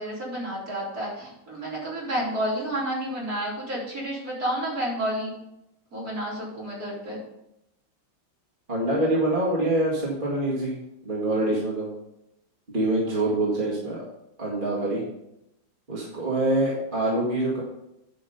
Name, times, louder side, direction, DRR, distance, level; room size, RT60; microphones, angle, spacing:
voice 1, 0.0-5.4 5.9-7.2, right 1 dB, 45° right, -7 dB, 4.7 m, -30 dB
voice 2, 8.7-11.9 12.7-14.0 14.4-15.0 15.9-17.6, right 1 dB, 25° right, -5 dB, 2.2 m, -25 dB
9.8 x 5.6 x 5.5 m, 0.84 s
omnidirectional pair, 2.1 m